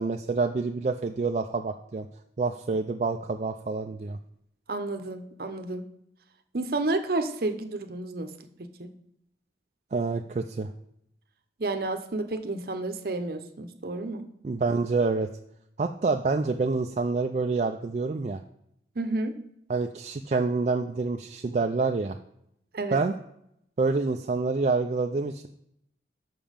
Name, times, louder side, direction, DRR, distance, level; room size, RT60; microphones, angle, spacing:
voice 1, 0.0-2.1 2.4-4.2 9.9-10.7 14.4-15.3 15.8-18.4 19.7-22.2 22.9-23.1 23.8-25.5, right 3 dB, 40° right, 4 dB, 0.3 m, -27 dB
voice 2, 4.7-5.8 6.5-8.3 8.6-8.9 11.6-14.2 19.0-19.3 22.7-23.0, right 2 dB, 55° right, 8 dB, 0.7 m, -31 dB
7.3 x 5.8 x 5.1 m, 0.76 s
head